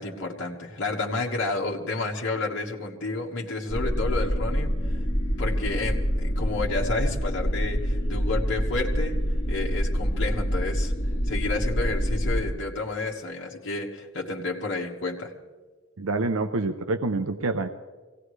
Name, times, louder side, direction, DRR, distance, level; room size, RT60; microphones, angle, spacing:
voice 1, 0.0-4.8 5.4-9.2 9.5-10.9 11.3-15.3, left 3 dB, 60° left, -2 dB, 1.5 m, -30 dB
sound 1, 3.7-12.4, equal, 30° left, 2.4 m, -26 dB
voice 2, 16.0-17.7, right 3 dB, 70° right, 8 dB, 0.7 m, -27 dB
25.0 x 17.5 x 3.2 m, 1.4 s
head